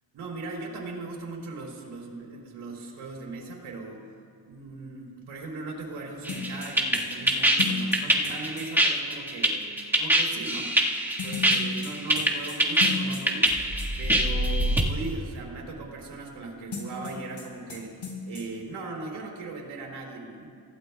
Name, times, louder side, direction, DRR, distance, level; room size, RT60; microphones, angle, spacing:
voice 1, 0.1-4.1 4.4-10.8 11.2-13.5 14.0-20.5, right 3 dB, 85° right, -2 dB, 3.3 m, -38 dB
sound 1, 6.3-8.7 11.2-13.5 13.8-13.9 16.7-17.4 17.7-17.8 18.0-18.4, left 4 dB, 65° left, 4.3 m, -34 dB
sound 2, 6.3-14.8, right 1 dB, 5° right, 1.6 m, -24 dB
26.0 x 16.5 x 2.3 m, 2.3 s
cardioid pair, 85°, 46 cm